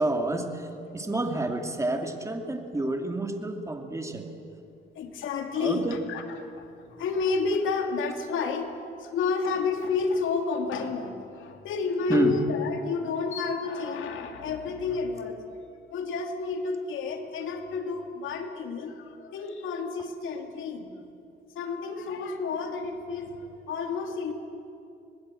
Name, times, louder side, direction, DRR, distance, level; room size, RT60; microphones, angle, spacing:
voice 1, 0.0-0.7 0.9-4.3 5.6-6.0 12.1-12.4, right 2 dB, 15° right, 4 dB, 2.6 m, -28 dB
voice 2, 5.0-15.4 15.9-20.9 21.5-24.3, left 4 dB, 80° left, 4 dB, 2.7 m, -30 dB
26.0 x 20.0 x 7.8 m, 2.7 s
cardioid pair, 90°, 20 cm